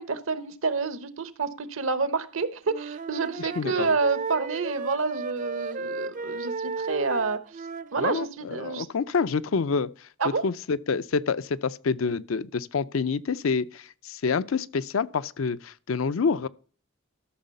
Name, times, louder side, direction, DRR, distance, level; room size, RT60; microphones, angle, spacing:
voice 1, 0.0-7.4 7.9-8.9 10.2-10.4, right 4 dB, 75° right, 1.0 m, -28 dB
Wind instrument woodwind instrument, 2.7-8.3, right 4 dB, 40° right, 0.5 m, -34 dB
voice 2, 3.4-3.9 8.0-9.9 10.4-16.5, left 5 dB, 70° left, 0.5 m, -27 dB
13.0 x 6.3 x 5.4 m
head